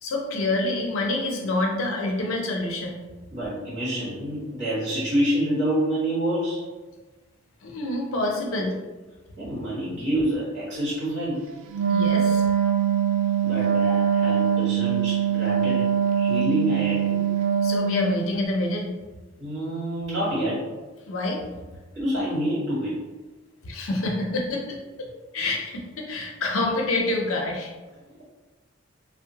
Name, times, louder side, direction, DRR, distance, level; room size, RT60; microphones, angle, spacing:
voice 1, 0.0-3.0 7.6-8.7 11.9-12.4 17.6-19.0 21.1-21.4 23.6-24.8 25.3-27.7, left 2 dB, 80° left, 0 dB, 0.5 m, -27 dB
voice 2, 3.3-6.6 8.1-8.2 9.4-11.4 13.4-15.9 16.1-17.2 19.4-20.6 21.9-23.0, equal, 55° right, -9 dB, 1.5 m, -27 dB
Wind instrument woodwind instrument, 11.7-18.2, right 8 dB, 85° right, 0.3 m, -22 dB
2.8 x 2.1 x 2.8 m, 1.2 s
head